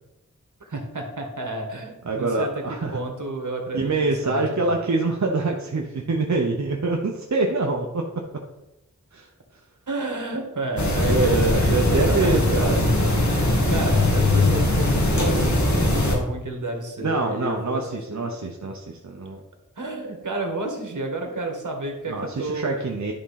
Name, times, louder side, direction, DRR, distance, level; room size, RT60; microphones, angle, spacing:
voice 1, 0.6-4.6 9.9-17.8 18.1-18.3 19.8-22.8, right 2 dB, 85° right, 3 dB, 1.9 m, -31 dB
voice 2, 2.1-3.0 3.7-8.1 9.1-9.6 11.0-12.8 17.0-19.4 22.1-23.1, right 3 dB, 65° right, 1 dB, 0.9 m, -25 dB
sound 1, 10.8-16.2, left 1 dB, 70° left, 2.2 m, -20 dB
11.0 x 3.7 x 5.8 m, 0.95 s
wide cardioid pair, 60°, 30 cm